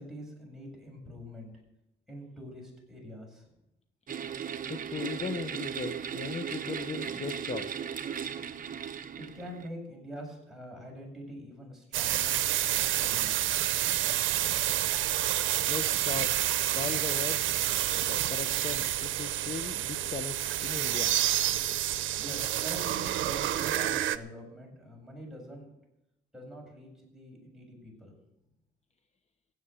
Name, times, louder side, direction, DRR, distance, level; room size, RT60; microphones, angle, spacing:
voice 1, 0.0-1.5 2.1-3.5 9.3-12.6 12.9-13.4 22.2-25.7 26.3-28.1, equal, ahead, -2 dB, 7.7 m, -45 dB
sound 1, 4.1-9.7, right 8 dB, 45° right, 1.0 m, -37 dB
voice 2, 4.7-7.8 15.6-16.4 16.7-17.4 18.1-21.2, left 5 dB, 35° left, 9 dB, 0.9 m, -38 dB
sound 2, 11.9-24.2, right 13 dB, 75° right, 0.8 m, -29 dB
16.5 x 8.2 x 7.7 m, 0.87 s
cardioid pair, 90°, 20 cm